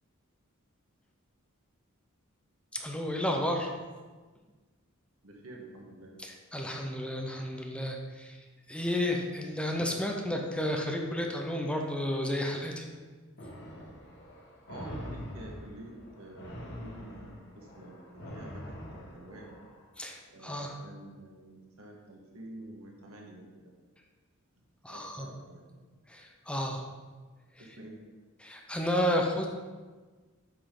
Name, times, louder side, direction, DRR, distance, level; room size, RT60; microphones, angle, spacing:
voice 1, 2.7-3.7 6.2-8.4 8.7-12.8 20.0-20.8 24.8-25.3 26.1-26.8 28.4-29.5, left 1 dB, 5° left, 1 dB, 0.7 m, -32 dB
voice 2, 5.2-6.2 14.7-19.5 20.3-23.7 24.9-25.7 27.6-28.0, right 1 dB, 90° right, -1 dB, 1.6 m, -48 dB
sound 1, 13.4-19.8, equal, 55° left, 1.4 m, -44 dB
8.2 x 5.6 x 3.8 m, 1.4 s
head